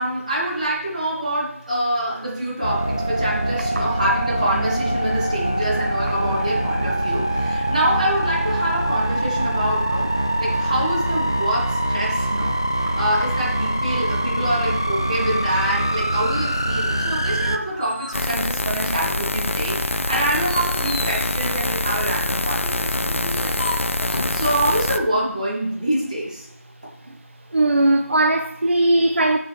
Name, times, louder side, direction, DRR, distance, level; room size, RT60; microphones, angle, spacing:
voice 1, 0.0-10.1 10.4-12.5 12.9-23.7 24.3-26.5, right 1 dB, 30° right, 3.2 m, -25 dB
sound 1, 2.6-17.6, right 1 dB, 15° left, 0.3 m, -23 dB
sound 2, 17.4-19.4 19.8-24.4, left 2 dB, 40° left, 1.2 m, -35 dB
sound 3, 18.1-25.0, left 2 dB, 55° left, 0.7 m, -24 dB
voice 2, 27.5-29.4, right 2 dB, 50° right, 0.6 m, -19 dB
12.5 x 7.2 x 3.5 m
figure-of-eight pair, 175°, 8 cm